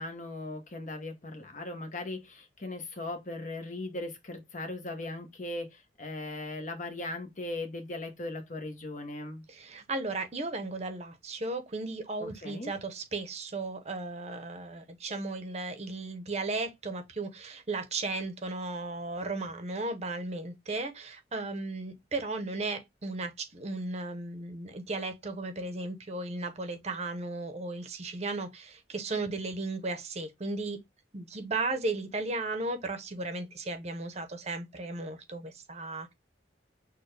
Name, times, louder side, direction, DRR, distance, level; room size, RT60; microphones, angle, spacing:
voice 1, 0.0-9.4 12.2-12.7, left 2 dB, 40° left, 0.9 m, -38 dB
voice 2, 9.5-30.8 31.1-36.1, right 3 dB, 35° right, 0.7 m, -35 dB
6.4 x 2.2 x 3.2 m
head